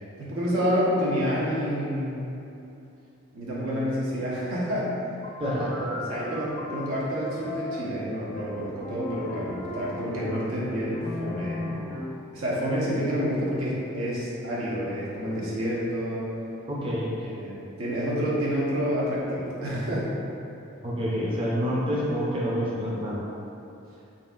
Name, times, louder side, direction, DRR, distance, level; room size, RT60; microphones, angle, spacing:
voice 1, 0.2-2.2 3.3-4.9 5.8-11.7 12.3-16.3 17.2-20.1, equal, 90° right, -7 dB, 0.9 m, -28 dB
sound 1, 5.2-12.3, left 2 dB, 30° left, 0.4 m, -37 dB
voice 2, 5.4-5.9 16.7-17.2 20.8-23.2, equal, 25° right, -7 dB, 0.5 m, -27 dB
4.1 x 3.7 x 2.4 m, 2.8 s
head